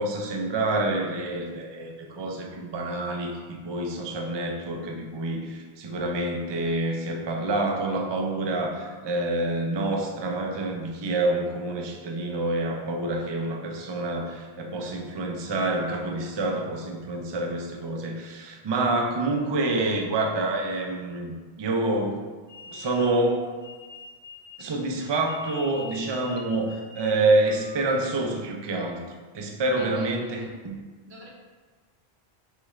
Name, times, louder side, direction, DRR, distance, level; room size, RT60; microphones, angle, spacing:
voice 1, 0.0-22.1 22.7-23.5 24.6-29.0 29.3-30.8, right 2 dB, 40° right, 1 dB, 0.4 m, -27 dB
sound 1, 22.5-28.5, left 3 dB, 20° right, 0.9 m, -45 dB
voice 2, 29.8-30.1 30.4-30.5 31.1-31.3, right 1 dB, 85° right, -3 dB, 1.2 m, -42 dB
6.5 x 2.4 x 3.1 m, 1.4 s
omnidirectional pair, 1.1 m